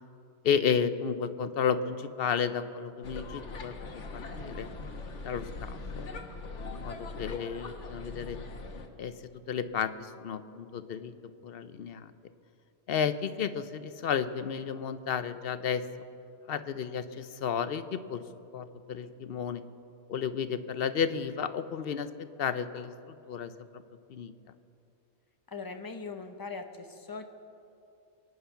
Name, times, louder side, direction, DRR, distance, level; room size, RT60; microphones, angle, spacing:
voice 1, 0.4-3.7 4.1-4.7 5.2-6.1 6.6-8.4 9.0-9.1 9.5-11.1 11.4-12.1 12.9-15.8 16.5-18.2 18.5-19.6 20.1-22.9 23.3-23.8 24.1-24.3, left 7 dB, 60° left, 12 dB, 0.8 m, -32 dB
sound 1, 3.0-8.9, left 3 dB, 90° left, 1.5 m, -41 dB
voice 2, 25.5-27.2, left 4 dB, 20° left, 6 dB, 0.9 m, -40 dB
23.5 x 9.6 x 5.7 m, 2.7 s
omnidirectional pair, 1.2 m